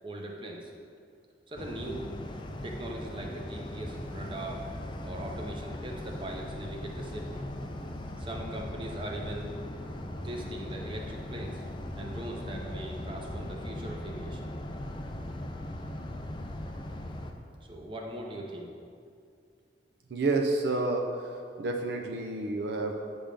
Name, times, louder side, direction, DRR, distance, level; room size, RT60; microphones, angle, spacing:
voice 1, 0.0-0.7 1.5-2.1 2.6-4.6 5.0-7.5 8.2-9.6 10.2-11.6 12.0-14.5 17.6-18.7, right 1 dB, 30° right, 0 dB, 0.7 m, -40 dB
sound 1, 1.6-17.3, left 1 dB, 25° left, 0.4 m, -39 dB
voice 2, 20.1-21.3 21.6-22.9, right 2 dB, 65° right, 2 dB, 0.5 m, -29 dB
8.7 x 3.5 x 5.1 m, 2.3 s
head